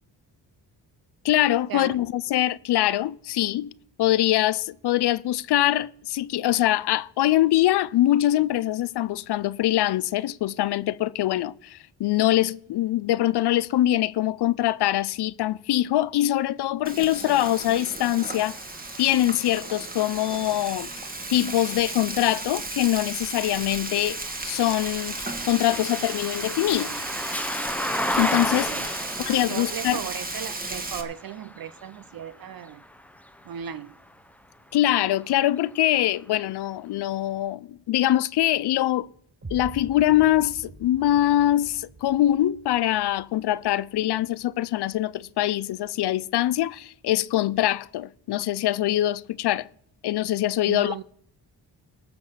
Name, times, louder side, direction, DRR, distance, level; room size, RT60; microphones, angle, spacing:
voice 1, 1.2-18.6 19.0-20.9 21.3-24.2 24.4-25.2 25.5-27.0 28.2-28.7 29.2-30.0 34.7-39.1 39.5-49.7 50.0-51.0, left 14 dB, 70° left, 0.5 m, -23 dB
Frying (food), 16.9-31.0, right 2 dB, 20° right, 1.4 m, -34 dB
sound 1, 18.3-34.2 34.8-36.0, equal, 5° left, 0.7 m, -35 dB
voice 2, 28.5-32.8 33.5-34.0 50.7-51.0, right 9 dB, 55° right, 0.6 m, -37 dB
sound 2, 39.4-45.4, right 2 dB, 40° right, 4.0 m, -45 dB
19.0 x 6.6 x 5.6 m
cardioid pair, 65°, 43 cm